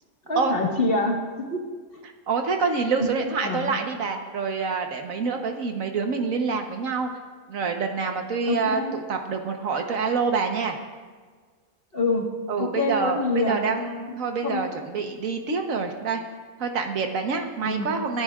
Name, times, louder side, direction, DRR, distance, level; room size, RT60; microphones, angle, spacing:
voice 1, 0.3-1.6 3.0-3.8 8.5-8.9 11.9-12.3 12.6-13.6 14.4-14.6 17.6-17.9, left 2 dB, 45° left, 0 dB, 1.7 m, -26 dB
voice 2, 2.3-7.1 7.5-10.8 12.5-16.2 16.6-18.2, right 5 dB, 75° right, 4 dB, 1.4 m, -26 dB
25.5 x 10.0 x 2.4 m, 1.5 s
omnidirectional pair, 1.4 m